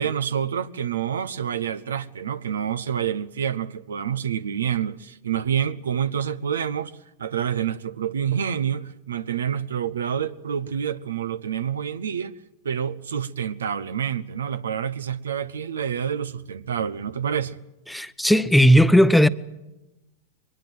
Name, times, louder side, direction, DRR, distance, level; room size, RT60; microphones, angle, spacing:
voice 1, 0.0-6.9 7.2-12.3 12.6-17.6, right 8 dB, 85° right, 0.8 m, -27 dB
voice 2, 17.9-19.3, equal, ahead, 0.8 m, -16 dB
22.0 x 21.0 x 7.7 m
hypercardioid pair, 105°, 0 cm